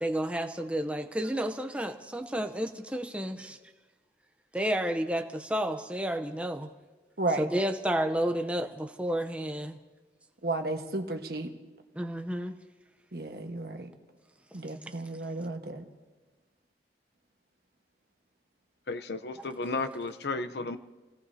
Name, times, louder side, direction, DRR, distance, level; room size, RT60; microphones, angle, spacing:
voice 1, 0.0-3.6 4.5-6.7 7.4-9.8 11.9-12.6, right 1 dB, 5° right, 6 dB, 0.7 m, -31 dB
voice 2, 10.4-11.5 13.1-13.9 14.5-15.8, right 2 dB, 60° right, 4 dB, 1.4 m, -33 dB
voice 3, 18.9-20.8, left 3 dB, 65° left, 10 dB, 0.7 m, -33 dB
29.0 x 17.5 x 2.8 m, 1.2 s
head